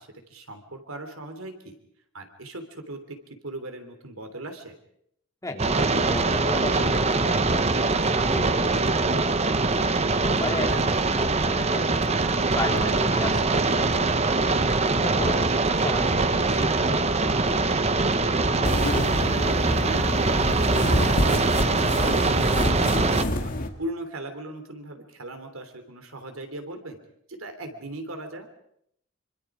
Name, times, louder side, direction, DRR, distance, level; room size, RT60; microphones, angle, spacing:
voice 1, 0.0-1.8 2.1-3.2 3.4-4.8 10.6-11.2 18.2-20.0 20.4-23.5 23.8-27.0 27.3-28.5, right 1 dB, 85° right, 7 dB, 3.3 m, -39 dB
voice 2, 5.4-7.3 7.8-9.6 10.1-10.8 11.1-14.3 15.0-17.1, left 1 dB, 15° left, 1 dB, 3.3 m, -35 dB
sound 1, 5.6-23.2, right 3 dB, 30° right, 1.0 m, -23 dB
sound 2, 16.1-21.8, left 1 dB, 80° left, 4.0 m, -39 dB
sound 3, 18.6-23.7, left 1 dB, 45° left, 2.0 m, -27 dB
26.0 x 25.5 x 5.0 m, 0.72 s
head